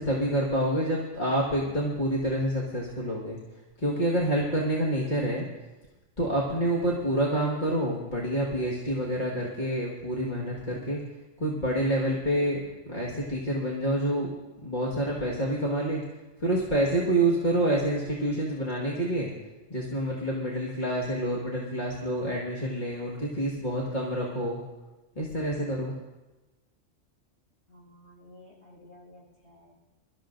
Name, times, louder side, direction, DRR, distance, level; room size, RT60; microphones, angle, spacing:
voice 1, 0.0-3.4 3.8-5.4 6.2-11.0 11.4-12.6 12.8-14.3 14.6-16.0 16.4-19.3 19.7-24.6 25.2-25.9, right 1 dB, 35° left, -5 dB, 1.8 m, -27 dB
voice 2, 27.7-29.7, left 1 dB, 55° left, -6 dB, 6.6 m, -53 dB
24.0 x 13.0 x 2.6 m, 1.1 s
omnidirectional pair, 1.3 m